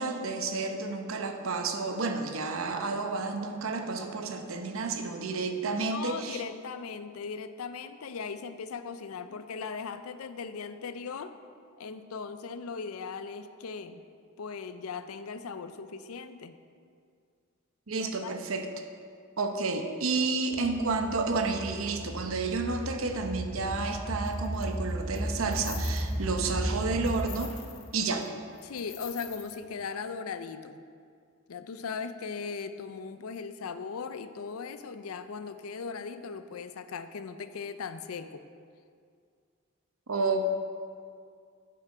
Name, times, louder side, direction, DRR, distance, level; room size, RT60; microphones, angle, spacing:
voice 1, 0.0-6.4 17.9-18.7 19.4-27.5 27.9-28.3 40.1-40.5, right 3 dB, 70° right, 5 dB, 0.8 m, -31 dB
voice 2, 5.9-11.4 11.8-14.0 14.4-16.6 18.0-18.5 28.6-30.8 31.5-38.4, left 5 dB, 85° left, 11 dB, 0.5 m, -38 dB
sound 1, 20.5-27.5, equal, 5° left, 1.3 m, -35 dB
sound 2, 24.3-24.6 25.2-26.4 26.7-27.9 28.2-28.3 28.6-29.6, left 11 dB, 60° left, 0.8 m, -46 dB
7.8 x 7.7 x 4.9 m, 2.2 s
head